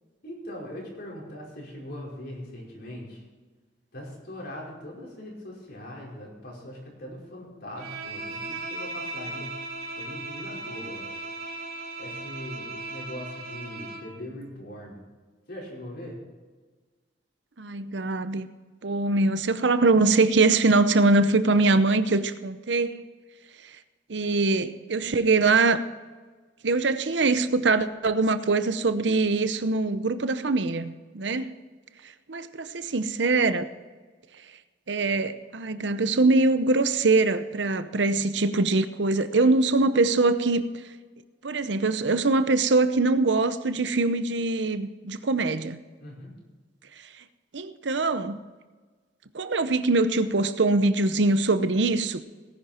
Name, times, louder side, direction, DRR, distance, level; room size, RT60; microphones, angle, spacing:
voice 1, 0.2-3.3 3.9-9.6 9.9-11.2 12.0-15.0 15.5-16.2 46.0-46.3, left 1 dB, 60° left, -3 dB, 5.1 m, -40 dB
Bowed string instrument, 7.8-14.1, right 2 dB, 55° right, 3.0 m, -37 dB
voice 2, 17.6-18.5 18.8-23.0 24.1-25.8 26.6-31.5 32.3-33.7 34.9-40.6 41.4-45.8 47.5-48.4 49.3-52.2, right 3 dB, 70° right, 12 dB, 0.8 m, -23 dB
18.0 x 10.5 x 4.4 m, 1.4 s
head